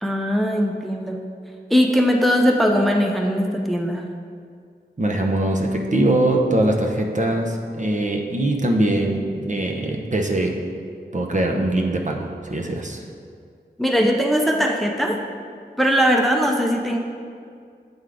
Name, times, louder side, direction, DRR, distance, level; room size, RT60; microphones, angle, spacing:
voice 1, 0.0-1.3 1.7-4.0 13.8-15.2 15.8-17.0, equal, ahead, 2 dB, 0.6 m, -20 dB
voice 2, 5.0-10.5 11.1-13.0, right 1 dB, 45° right, 1 dB, 0.8 m, -22 dB
7.9 x 3.7 x 4.9 m, 2.2 s
wide cardioid pair, 45°, 18 cm